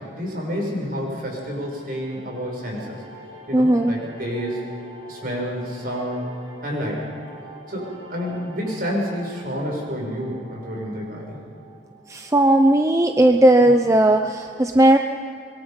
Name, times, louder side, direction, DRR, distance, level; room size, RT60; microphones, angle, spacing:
voice 1, 0.0-3.0 3.5-4.7 5.1-6.3 6.6-7.0 7.7-11.4, equal, 50° right, -1 dB, 6.3 m, -29 dB
sound 1, 1.4-12.4, right 2 dB, 85° right, 6.2 m, -45 dB
voice 2, 3.5-4.0 12.1-15.0, right 1 dB, 15° right, 6 dB, 0.6 m, -16 dB
25.0 x 22.5 x 5.2 m, 2.4 s
head